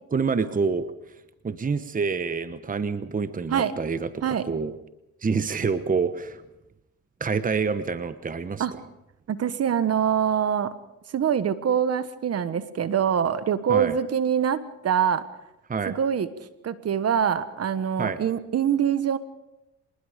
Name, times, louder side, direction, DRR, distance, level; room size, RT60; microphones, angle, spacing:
voice 1, 0.1-0.9 1.4-4.7 5.2-6.4 7.2-8.6 13.7-14.0 15.7-16.0 18.0-18.2, right 5 dB, 25° right, 11 dB, 1.1 m, -27 dB
voice 2, 9.3-10.7 11.1-15.2 15.9-19.2, right 8 dB, 55° right, 13 dB, 1.4 m, -24 dB
26.5 x 20.0 x 5.2 m, 0.91 s
cardioid pair, 90°, 30 cm